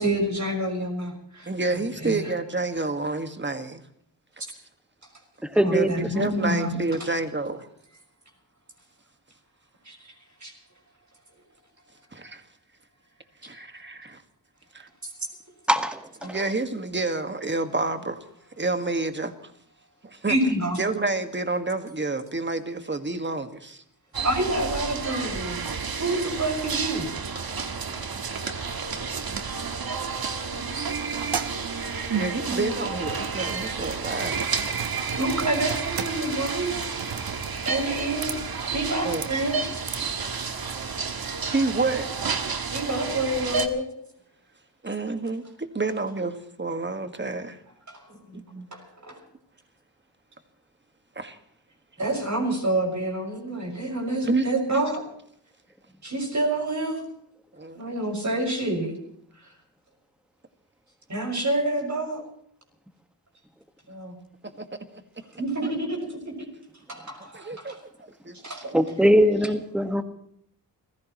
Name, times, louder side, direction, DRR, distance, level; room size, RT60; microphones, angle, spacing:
voice 1, 0.0-1.5 2.0-2.3 5.5-6.8 9.8-10.0 10.4-10.5 16.2-16.3 20.3-20.8 24.2-25.7 26.0-27.1 32.5-32.7 35.2-36.8 37.6-38.4 38.7-39.6 42.7-43.9 47.9-48.4 48.7-49.2 52.0-55.0 56.0-57.0 57.7-58.9 61.1-62.2 63.9-64.1 65.4-66.5 66.9-67.8 68.4-68.7, right 1 dB, 40° right, 0 dB, 5.7 m, -28 dB
voice 2, 1.5-3.8 5.6-7.7 12.1-12.4 13.4-14.2 14.7-14.9 16.2-18.2 18.6-19.5 20.0-20.4 20.8-23.8 32.1-34.4 39.0-39.3 41.5-42.4 44.8-47.6 48.3-48.7 51.2-51.4 54.2-54.8 57.5-57.9 64.6-64.7 64.9-65.0 65.6-65.7 67.3-67.8 68.2-68.8, right 3 dB, 25° right, 8 dB, 1.8 m, -29 dB
voice 3, 5.5-5.9 15.7-16.0 68.7-70.0, equal, ahead, 7 dB, 1.6 m, -20 dB
sound 1, 24.1-43.7, right 5 dB, 60° right, 1.5 m, -31 dB
sound 2, 31.0-40.4, right 7 dB, 75° right, 1.3 m, -37 dB
30.0 x 15.5 x 3.1 m, 0.69 s
wide cardioid pair, 80°, 42 cm